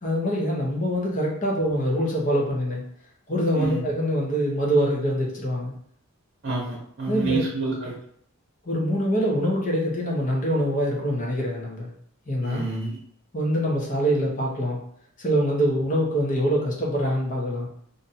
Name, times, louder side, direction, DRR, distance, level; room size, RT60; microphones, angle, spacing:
voice 1, 0.0-2.8 3.3-5.7 7.1-7.4 8.6-11.9 12.3-12.6 13.3-14.8 15.2-17.7, equal, 35° left, -3 dB, 0.9 m, -24 dB
voice 2, 3.5-3.9 6.4-8.0 12.4-13.0, right 3 dB, 45° right, -3 dB, 0.8 m, -28 dB
2.6 x 2.4 x 4.1 m, 0.65 s
head